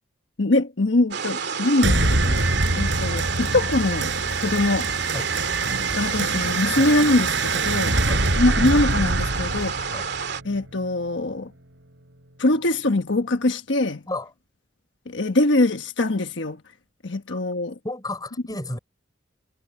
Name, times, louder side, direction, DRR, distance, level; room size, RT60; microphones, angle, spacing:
voice 1, 0.4-2.4 2.7-4.1 4.4-4.9 5.9-8.0 8.4-9.9 10.4-11.5 12.4-14.0 15.1-16.6 17.0-17.8, left 2 dB, 85° left, 1.2 m, -23 dB
sound 1, 1.1-10.4, right 6 dB, 65° right, 2.6 m, -29 dB
sound 2, 1.8-10.8, right 2 dB, 85° right, 5.3 m, -25 dB
voice 2, 17.8-18.8, left 2 dB, 20° left, 6.4 m, -32 dB
head